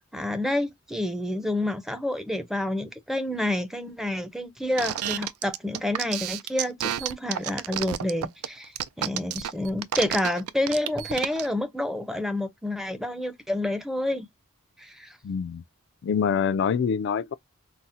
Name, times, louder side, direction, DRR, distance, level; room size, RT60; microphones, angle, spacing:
voice 1, 0.0-14.3 14.8-15.2, left 1 dB, ahead, 0.5 m, -29 dB
sound 1, 4.8-11.5, right 10 dB, 85° right, 0.4 m, -30 dB
voice 2, 15.2-15.6 16.0-17.3, left 7 dB, 55° left, 0.3 m, -25 dB
4.1 x 2.0 x 2.4 m
head